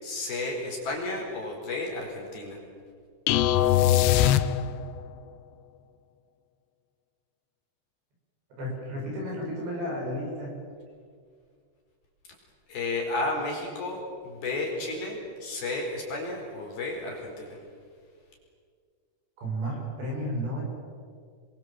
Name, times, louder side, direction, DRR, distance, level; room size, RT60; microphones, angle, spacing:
voice 1, 0.0-2.6 12.7-17.6, left 2 dB, 50° left, 0 dB, 6.0 m, -32 dB
sound 1, 3.3-5.0, left 11 dB, 80° left, 2.5 m, -21 dB
voice 2, 8.6-10.5 19.4-20.6, equal, 55° right, -2 dB, 9.9 m, -32 dB
29.5 x 24.0 x 7.8 m, 2.1 s
omnidirectional pair, 5.9 m